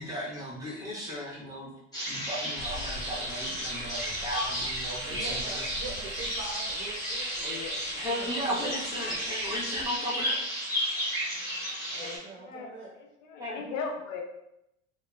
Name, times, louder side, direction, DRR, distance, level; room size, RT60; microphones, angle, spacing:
voice 1, 0.0-1.7 2.1-5.7 7.9-10.4 13.4-13.6, equal, 10° right, -6 dB, 1.2 m, -35 dB
sound 1, 1.9-12.2, equal, 10° left, 1.3 m, -33 dB
sound 2, 2.6-9.9, left 2 dB, 35° left, 0.5 m, -46 dB
voice 2, 5.0-8.8 11.9-12.9, right 4 dB, 30° right, -2 dB, 0.6 m, -43 dB
voice 3, 7.4-7.7 11.9-12.7 13.2-14.2, left 5 dB, 80° left, 3 dB, 0.6 m, -38 dB
2.7 x 2.1 x 2.4 m, 0.86 s
hypercardioid pair, 80°, 39 cm